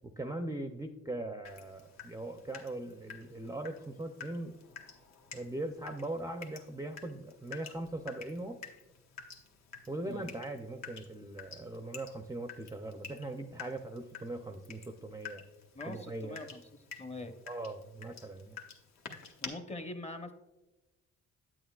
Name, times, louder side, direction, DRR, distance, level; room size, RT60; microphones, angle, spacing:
voice 1, 0.0-4.5 5.3-8.6 9.9-15.4 15.9-16.5 17.5-18.6, right 2 dB, 10° right, 6 dB, 0.5 m, -40 dB
Water tap faucet / Drip, 1.4-19.5, left 6 dB, 65° left, 1.1 m, -50 dB
voice 2, 15.7-16.6 17.0-17.3 19.4-20.3, left 2 dB, 20° left, 7 dB, 0.8 m, -43 dB
8.8 x 8.7 x 2.3 m, 1.0 s
cardioid pair, 90°, 30 cm